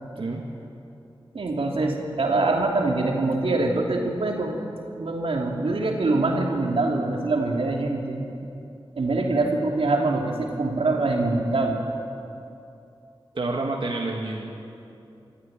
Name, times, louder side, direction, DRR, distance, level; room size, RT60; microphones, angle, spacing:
voice 1, 0.2-0.5 13.3-14.5, right 2 dB, 65° right, -1 dB, 2.0 m, -29 dB
voice 2, 1.3-4.6 4.9-8.2 8.9-11.8, right 2 dB, 90° right, 0 dB, 2.9 m, -24 dB
26.0 x 14.0 x 8.9 m, 2.7 s
wide cardioid pair, 85°, 9 cm